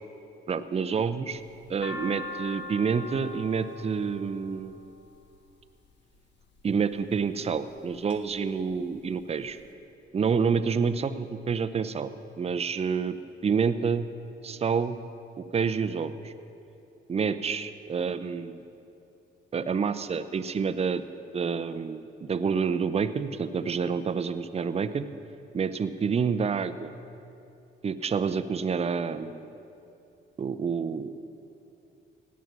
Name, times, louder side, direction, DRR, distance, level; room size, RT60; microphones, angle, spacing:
voice 1, 0.5-1.4 1.7-4.7 6.6-9.6 10.1-12.1 12.4-13.1 13.4-14.1 14.4-15.0 15.4-16.3 17.1-18.6 19.5-21.0 21.3-25.1 25.5-26.9 27.8-29.5 30.4-31.1, right 6 dB, 30° right, 11 dB, 0.6 m, -28 dB
sound 1, 1.4-5.6 6.4-6.9 7.5-8.2 8.5-8.6 8.8-9.6, left 2 dB, 65° left, 1.6 m, -40 dB
17.0 x 9.5 x 6.0 m, 2.7 s
cardioid pair, 90°, 20 cm